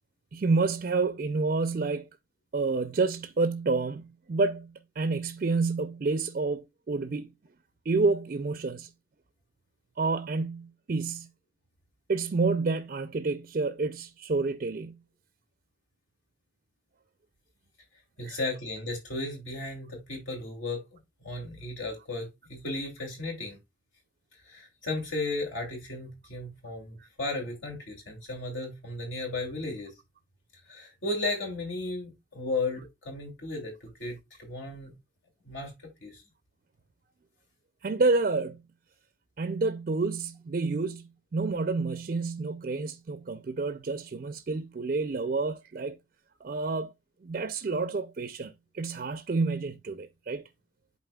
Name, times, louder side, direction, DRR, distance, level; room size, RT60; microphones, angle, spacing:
voice 1, 0.3-2.1 2.5-7.3 7.9-8.9 10.0-11.3 12.1-15.0 18.2-18.4 37.8-38.6 39.4-46.0 46.4-46.9 47.2-50.4, right 3 dB, 45° right, 0.4 m, -29 dB
voice 2, 18.2-20.8 21.2-23.6 24.5-29.9 30.7-34.9 35.4-35.7 36.0-36.2, left 2 dB, 75° left, 2.6 m, -35 dB
11.0 x 4.2 x 2.3 m
head